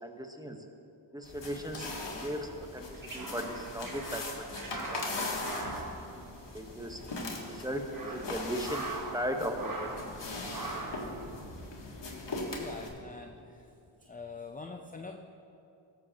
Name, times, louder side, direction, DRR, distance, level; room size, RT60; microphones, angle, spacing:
voice 1, 0.0-0.6 1.1-1.9 2.2-4.5 4.7-5.7 6.1-6.3 6.5-7.0 7.5-8.9 9.1-10.0, equal, 10° right, 4 dB, 1.0 m, -37 dB
sound 1, 1.2-12.9, left 2 dB, 55° left, 1.6 m, -40 dB
sound 2, 2.7-6.8 7.0-7.2 7.7-9.3 9.5-10.1 10.5-11.1, right 3 dB, 40° right, 1.3 m, -41 dB
Fire, 4.0-4.1 5.4-14.5, left 1 dB, 85° left, 1.3 m, -52 dB
voice 2, 12.1-13.7 14.0-15.2, left 4 dB, 15° left, 4 dB, 0.5 m, -45 dB
13.5 x 7.5 x 2.9 m, 2.6 s
cardioid pair, 40°, 50 cm